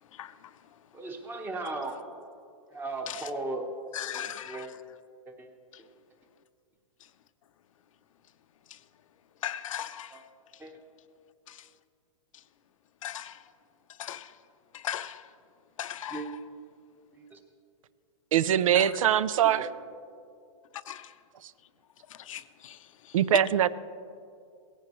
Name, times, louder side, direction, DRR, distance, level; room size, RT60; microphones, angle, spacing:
voice 1, 0.1-0.8 3.1-3.3 3.9-4.8 5.7-5.8 8.7-8.8 9.4-10.2 10.5-10.6 11.5-11.7 12.3-12.4 13.0-13.5 13.9-14.4 14.7-15.3 15.8-16.4 18.7-18.9 20.7-21.2 22.1-23.2, left 11 dB, 80° left, 0.6 m, -39 dB
voice 2, 0.9-2.0 2.7-3.7 4.1-4.7 5.3-5.5 10.1-10.2 10.6-10.8 16.1-16.3 17.1-17.4 19.6-19.7, right 2 dB, 10° right, 1.0 m, -37 dB
voice 3, 18.3-19.7 23.1-23.7, right 10 dB, 90° right, 0.5 m, -22 dB
17.5 x 15.5 x 3.1 m
supercardioid pair, 155°, 17 cm